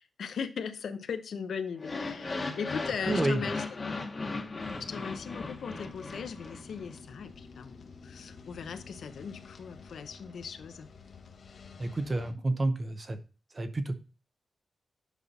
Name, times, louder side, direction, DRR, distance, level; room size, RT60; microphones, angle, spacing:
voice 1, 0.0-3.8 4.8-10.9, left 6 dB, 75° left, 9 dB, 0.8 m, -38 dB
sound 1, 1.8-6.9, left 3 dB, 30° left, 1.2 m, -37 dB
voice 2, 3.1-3.4 11.8-13.2 13.6-14.0, right 2 dB, 25° right, 9 dB, 0.7 m, -29 dB
sound 2, 4.6-12.3, left 4 dB, 55° left, 1.0 m, -50 dB
8.2 x 5.6 x 4.1 m, 0.36 s
wide cardioid pair, 175°, 0 cm